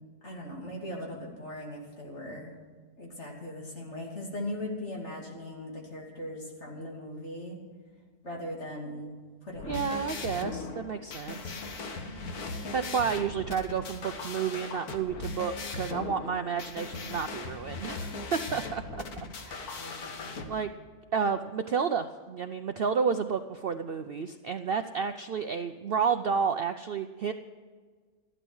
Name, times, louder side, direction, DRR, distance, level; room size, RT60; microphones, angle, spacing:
voice 1, 0.2-2.5 3.0-7.6 8.2-9.1 9.4-9.8 19.8-20.6, left 1 dB, 45° left, -1 dB, 3.0 m, -39 dB
sound 1, 9.5-20.4, left 3 dB, 75° left, 1.8 m, -39 dB
voice 2, 9.7-12.5 12.7-19.0 19.4-20.0 20.5-20.7 21.1-27.3, right 6 dB, 75° right, 9 dB, 0.5 m, -31 dB
13.5 x 12.0 x 6.3 m, 1.5 s
omnidirectional pair, 1.6 m